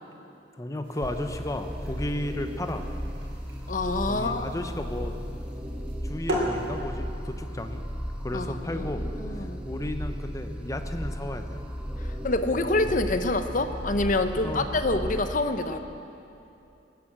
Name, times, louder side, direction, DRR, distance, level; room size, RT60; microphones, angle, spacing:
voice 1, 0.6-2.8 4.1-5.4 6.0-7.8 8.2-9.1 9.4-11.6 12.8-12.9 14.3-14.7, left 1 dB, 20° left, 7 dB, 0.8 m, -34 dB
sound 1, 0.8-15.0, equal, 90° right, 3.6 m, -41 dB
sound 2, 1.0-15.2, equal, 5° right, 1.0 m, -35 dB
voice 2, 3.7-4.6 8.3-8.9 9.2-9.6 12.2-15.8, left 2 dB, 45° left, 9 dB, 0.8 m, -26 dB
18.5 x 9.5 x 7.5 m, 2.8 s
head